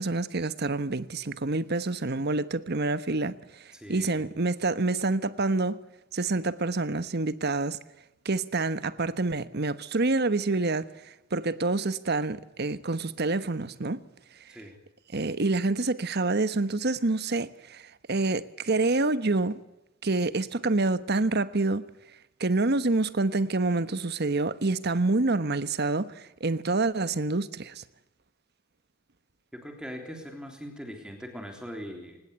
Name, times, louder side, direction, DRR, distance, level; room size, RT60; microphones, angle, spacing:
voice 1, 0.0-5.8 6.1-7.8 8.2-14.0 15.1-19.6 20.0-21.9 22.4-27.8, right 3 dB, 55° right, 1.2 m, -27 dB
voice 2, 3.7-4.3 14.5-14.8 29.5-32.2, equal, 5° right, 3.5 m, -41 dB
25.5 x 20.0 x 8.2 m
head